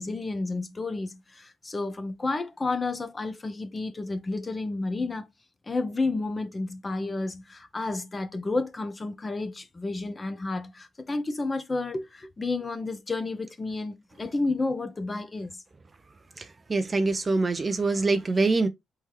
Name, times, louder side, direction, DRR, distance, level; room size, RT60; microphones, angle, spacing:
voice 1, 0.0-5.3 5.7-15.6, left 3 dB, 25° left, 0.9 m, -31 dB
voice 2, 16.7-18.7, right 3 dB, 30° right, 0.6 m, -24 dB
4.3 x 3.5 x 3.1 m
cardioid pair, 90°, 0 cm